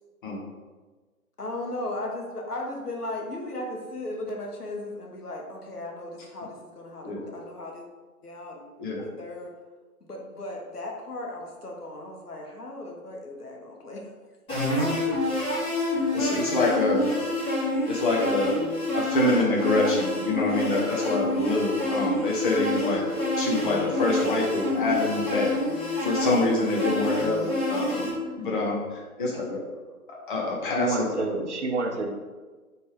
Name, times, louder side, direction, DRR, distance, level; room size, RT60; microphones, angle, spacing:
voice 1, 1.4-7.9 8.2-8.7 9.0-9.5 10.1-14.1 14.8-14.9 27.7-28.6, left 2 dB, 85° left, 0 dB, 1.1 m, -36 dB
sound 1, 14.5-28.1, left 1 dB, 10° left, 1.3 m, -28 dB
voice 2, 16.1-17.1 17.8-18.5 18.9-25.5 26.0-28.1 28.4-29.6 30.3-31.2, left 2 dB, 35° left, -3 dB, 1.1 m, -26 dB
voice 3, 30.7-32.1, right 3 dB, 50° right, 3 dB, 0.7 m, -28 dB
4.2 x 3.3 x 3.6 m, 1.3 s
figure-of-eight pair, 135°, 45 cm